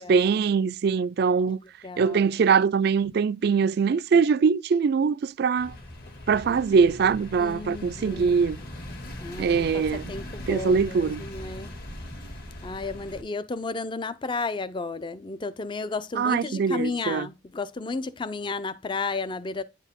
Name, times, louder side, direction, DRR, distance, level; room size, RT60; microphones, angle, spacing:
voice 1, 0.0-1.6 2.0-5.7 6.3-8.6 9.4-10.1 10.5-11.2 16.1-17.3, right 5 dB, 55° right, 0.3 m, -22 dB
voice 2, 1.8-2.2 7.4-8.3 9.2-9.8 10.1-11.7 12.6-19.6, left 3 dB, 25° left, 0.4 m, -33 dB
sound 1, 5.6-13.2, left 1 dB, 50° left, 2.1 m, -40 dB
9.7 x 4.5 x 3.6 m
head